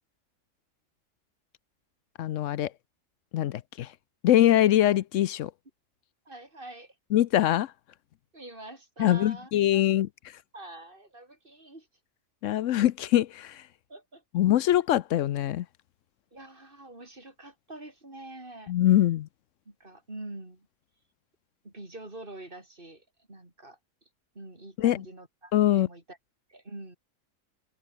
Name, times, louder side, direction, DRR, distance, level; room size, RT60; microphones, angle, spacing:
voice 1, 2.2-2.7 3.3-3.9 4.2-5.5 7.1-7.7 9.0-10.4 12.4-13.7 14.3-15.7 18.7-19.3 24.8-25.0 25.5-25.9, left 12 dB, 75° left, 1.0 m, -23 dB
voice 2, 6.3-7.0 8.3-9.8 10.5-11.9 13.9-14.2 16.3-18.7 19.7-20.7 21.6-23.8 24.3-26.2 26.5-27.0, right 2 dB, 40° right, 4.6 m, -45 dB
open air
omnidirectional pair, 1.3 m